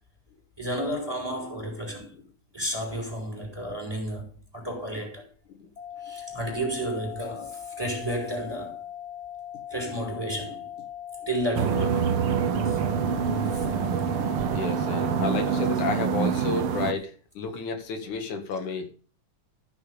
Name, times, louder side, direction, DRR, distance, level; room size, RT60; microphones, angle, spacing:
voice 1, 0.6-2.1 2.5-5.2 6.0-8.8 9.7-10.7 11.3-11.9 12.7-12.8 13.5-13.6, right 1 dB, 5° right, 4.4 m, -32 dB
sound 1, 5.8-15.8, left 10 dB, 55° left, 3.3 m, -40 dB
sound 2, 11.5-16.9, right 7 dB, 65° right, 1.4 m, -26 dB
voice 2, 14.2-18.9, left 4 dB, 85° left, 3.3 m, -32 dB
14.5 x 6.5 x 6.9 m
omnidirectional pair, 3.4 m